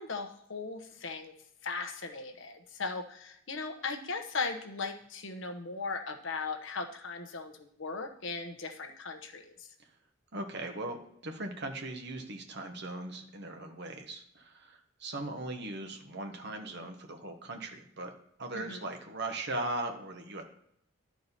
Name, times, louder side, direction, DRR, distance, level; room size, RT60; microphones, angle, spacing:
voice 1, 0.0-1.3 1.6-9.7 18.5-18.9, left 4 dB, 65° left, 6 dB, 1.1 m, -38 dB
voice 2, 10.3-11.0 11.2-18.1 18.4-20.4, right 2 dB, 55° right, 4 dB, 1.3 m, -39 dB
11.5 x 4.8 x 4.1 m, 0.71 s
head